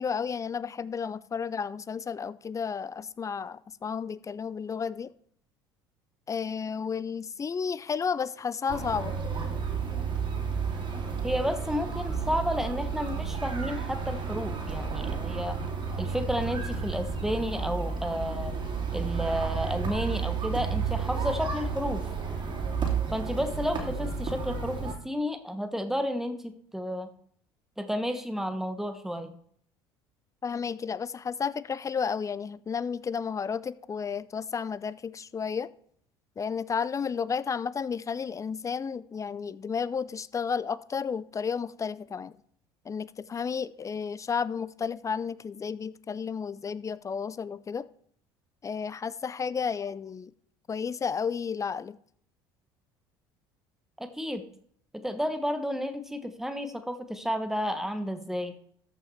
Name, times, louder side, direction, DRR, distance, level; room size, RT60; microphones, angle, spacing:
voice 1, 0.0-5.1 6.3-9.1 30.4-35.7 36.4-42.3 42.8-47.9 48.6-50.3 50.7-52.0, left 6 dB, 25° left, 0.5 m, -32 dB
sound 1, 8.7-24.9, right 5 dB, 40° right, 2.8 m, -32 dB
voice 2, 11.2-15.6 16.0-18.5 18.9-22.0 23.1-27.1 27.8-29.3 54.0-54.4 54.9-58.5, equal, 5° right, 1.3 m, -31 dB
13.5 x 5.7 x 4.4 m
hypercardioid pair, 70°, 12 cm